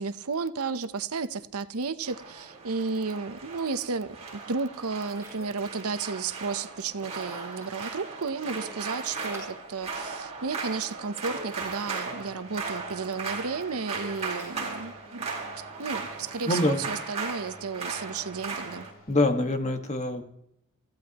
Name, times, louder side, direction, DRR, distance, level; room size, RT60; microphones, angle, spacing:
voice 1, 0.0-15.3 15.6-18.9, right 4 dB, 85° right, 0.8 m, -33 dB
sound 1, 1.3-18.8, right 2 dB, 15° right, 6.1 m, -54 dB
sound 2, 2.0-18.9, right 4 dB, 30° right, 4.3 m, -37 dB
sound 3, 11.6-19.3, equal, 60° left, 3.9 m, -53 dB
voice 2, 16.5-16.9 19.1-20.2, left 2 dB, 30° left, 1.6 m, -25 dB
29.5 x 15.5 x 3.0 m
head